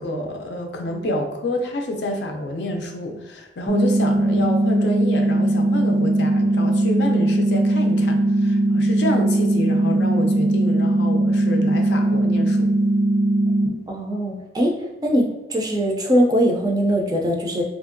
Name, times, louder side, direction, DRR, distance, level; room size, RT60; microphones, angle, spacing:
voice 1, 0.0-12.7, left 1 dB, 70° left, 3 dB, 0.5 m, -28 dB
sound 1, 3.7-13.7, right 1 dB, 85° right, 0.5 m, -19 dB
voice 2, 13.9-14.7 15.0-17.6, equal, 20° right, 0 dB, 0.4 m, -21 dB
2.8 x 2.5 x 2.5 m, 1.0 s
head